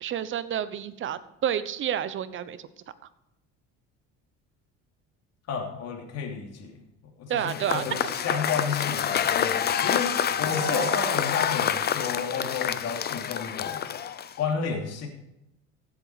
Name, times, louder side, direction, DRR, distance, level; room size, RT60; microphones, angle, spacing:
voice 1, 0.0-2.6 7.3-8.1 10.4-11.1, right 9 dB, 40° right, 14 dB, 0.9 m, -30 dB
voice 2, 5.5-6.8 7.2-13.9 14.4-15.1, left 6 dB, 55° left, 1 dB, 3.0 m, -31 dB
Cheering / Applause / Crowd, 7.4-14.5, left 9 dB, 35° left, 0.7 m, -27 dB
15.5 x 8.1 x 4.9 m, 0.90 s
cardioid pair, 125°, 30 cm